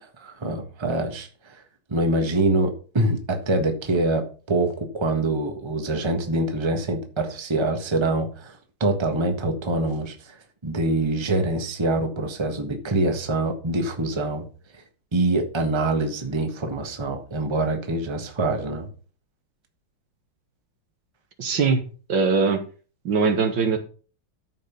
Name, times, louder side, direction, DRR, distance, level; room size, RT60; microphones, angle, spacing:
voice 1, 0.0-1.6 1.9-14.4 15.1-18.9, right 2 dB, 15° right, 5 dB, 1.3 m, -25 dB
voice 2, 21.4-21.8 22.1-22.6 23.1-23.8, right 5 dB, 65° right, 6 dB, 1.9 m, -21 dB
13.5 x 5.3 x 5.5 m, 0.39 s
omnidirectional pair, 2.3 m